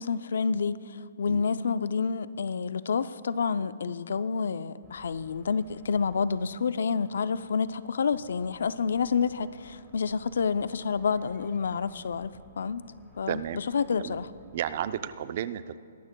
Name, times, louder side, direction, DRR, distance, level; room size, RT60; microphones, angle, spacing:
voice 1, 0.0-12.8 13.2-13.4 13.7-14.3, left 5 dB, 75° left, 15 dB, 0.4 m, -29 dB
sound 1, 4.8-14.8, equal, ahead, 2.0 m, -56 dB
voice 2, 13.3-13.6 14.0-14.2 14.5-15.8, right 10 dB, 50° right, 14 dB, 0.5 m, -33 dB
21.5 x 12.0 x 2.2 m, 2.5 s
hypercardioid pair, 145°, 0 cm